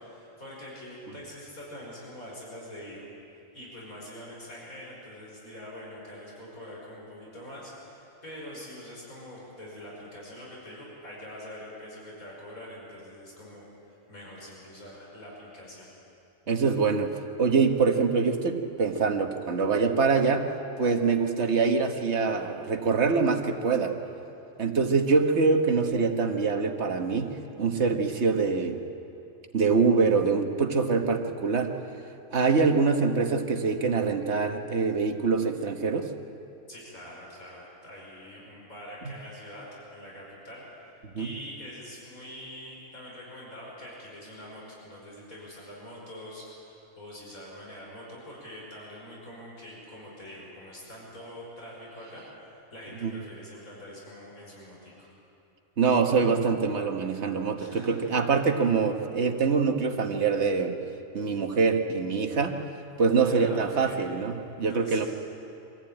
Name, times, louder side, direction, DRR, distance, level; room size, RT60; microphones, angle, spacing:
voice 1, 0.0-3.0 3.5-15.9 36.7-40.9 41.2-55.1 57.6-58.0 63.2-64.1 64.6-65.1, left 1 dB, 85° left, -4 dB, 5.7 m, -44 dB
voice 2, 16.5-17.1 17.4-20.5 20.8-23.9 24.6-28.8 29.5-31.7 32.3-36.1 41.2-41.3 53.0-53.1 55.8-60.8 61.1-62.6 63.0-65.1, right 5 dB, 55° right, 5 dB, 1.6 m, -24 dB
24.5 x 15.0 x 9.0 m, 2.8 s
omnidirectional pair, 1.4 m